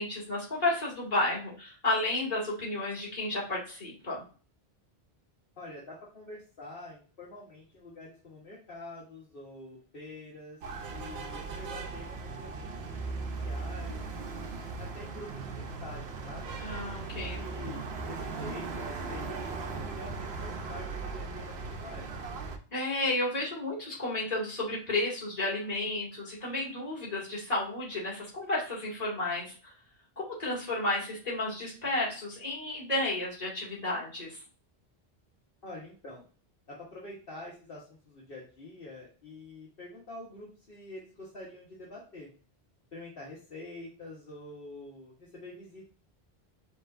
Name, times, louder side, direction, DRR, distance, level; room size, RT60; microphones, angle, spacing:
voice 1, 0.0-4.2 16.6-17.4 22.7-29.7 30.2-34.4, left 2 dB, 40° left, -5 dB, 2.2 m, -32 dB
voice 2, 5.6-10.6 10.9-16.6 17.4-17.8 18.1-19.4 19.8-22.2 35.6-36.2 36.7-42.3 42.9-45.9, left 2 dB, 65° left, -5 dB, 1.4 m, -46 dB
sound 1, 10.6-22.6, right 4 dB, 80° right, 0.9 m, -38 dB
5.3 x 3.1 x 2.5 m, 0.38 s
omnidirectional pair, 1.0 m